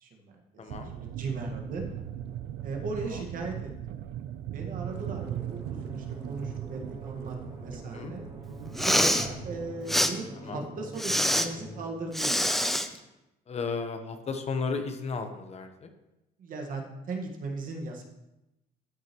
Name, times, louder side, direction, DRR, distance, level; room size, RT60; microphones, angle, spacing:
voice 1, 0.0-0.6 0.9-1.8 2.6-3.7 4.5-8.2 8.7-12.5 16.4-18.0, right 3 dB, 55° right, 1 dB, 1.6 m, -37 dB
voice 2, 0.6-0.9 3.0-3.2 7.9-8.1 10.4-10.6 13.5-15.9, left 4 dB, 40° left, 7 dB, 1.0 m, -34 dB
sound 1, 0.7-9.7, right 11 dB, 80° right, 0.5 m, -39 dB
sound 2, 4.8-11.9, equal, 35° right, 2.3 m, -45 dB
Respiratory sounds, 8.7-9.3 9.9-10.1 11.0-11.5 12.1-12.9, equal, ahead, 0.6 m, -25 dB
13.0 x 6.3 x 3.0 m, 0.94 s
cardioid pair, 110°, 17 cm